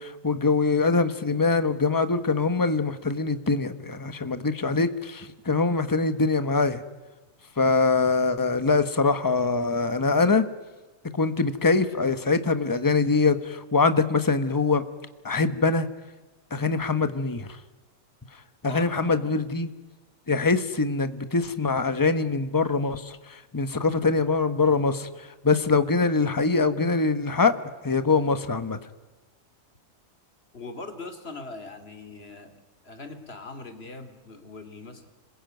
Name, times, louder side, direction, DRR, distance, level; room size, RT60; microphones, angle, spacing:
voice 1, 0.0-6.8 7.6-10.5 11.1-14.8 15.2-15.9 16.5-17.5 18.6-19.7 20.3-25.1 25.4-27.6 27.8-28.8, left 4 dB, 15° left, 11 dB, 1.1 m, -23 dB
voice 2, 18.7-19.5 30.5-32.5 32.8-35.0, left 3 dB, 45° left, 7 dB, 2.8 m, -41 dB
26.0 x 21.5 x 9.3 m, 1.2 s
omnidirectional pair, 1.5 m